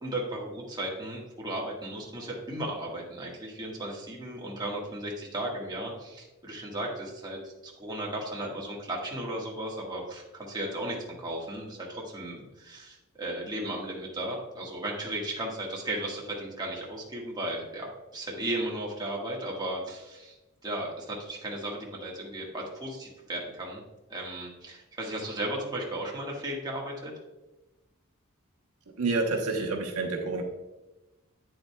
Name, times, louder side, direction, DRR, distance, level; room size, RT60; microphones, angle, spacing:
voice 1, 0.0-20.4 20.6-23.8 24.1-27.1, right 1 dB, 20° right, -3 dB, 1.5 m, -35 dB
voice 2, 29.0-30.4, right 3 dB, 80° right, 1 dB, 1.1 m, -28 dB
8.9 x 7.7 x 2.3 m, 1.1 s
head